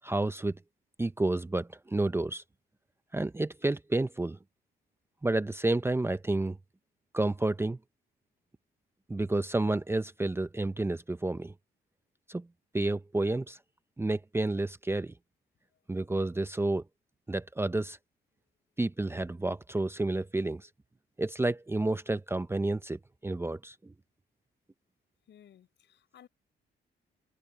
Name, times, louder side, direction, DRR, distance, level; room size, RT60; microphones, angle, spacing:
voice 1, 0.0-0.6 1.0-2.4 3.1-4.4 5.2-6.6 7.1-7.8 9.1-11.5 12.3-12.5 12.7-13.6 14.0-15.1 15.9-16.8 17.3-18.0 18.8-20.7 21.2-23.9, right 2 dB, 10° right, 0.7 m, -30 dB
voice 2, 25.3-26.3, left 10 dB, 65° left, 4.6 m, -57 dB
cardioid pair, 90°, 20 cm